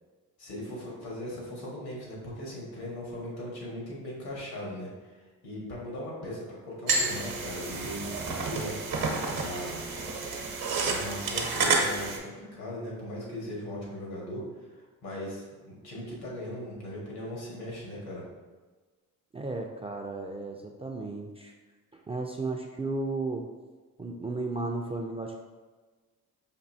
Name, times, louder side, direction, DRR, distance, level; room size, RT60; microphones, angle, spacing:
voice 1, 0.4-5.2 5.4-8.7 9.3-9.8 10.8-18.2, left 1 dB, 85° left, -4 dB, 1.5 m, -38 dB
sound 1, 6.9-12.2, right 3 dB, 70° right, 0.8 m, -30 dB
voice 2, 19.3-21.5 21.9-23.5 24.0-25.4, right 3 dB, 15° right, 0 dB, 0.3 m, -34 dB
5.2 x 2.7 x 2.7 m, 1.3 s
cardioid pair, 80°, 37 cm